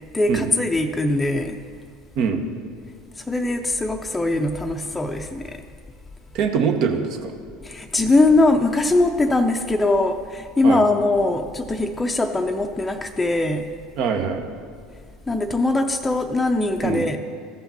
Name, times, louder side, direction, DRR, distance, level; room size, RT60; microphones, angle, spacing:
voice 1, 0.1-1.6 3.3-5.6 7.6-13.7 15.3-17.2, left 2 dB, 15° left, 3 dB, 0.5 m, -21 dB
voice 2, 6.3-7.3 10.6-10.8 14.0-14.4 16.8-17.0, right 6 dB, 55° right, 5 dB, 1.0 m, -23 dB
13.5 x 5.7 x 4.2 m, 2.1 s
hypercardioid pair, 70°, 0 cm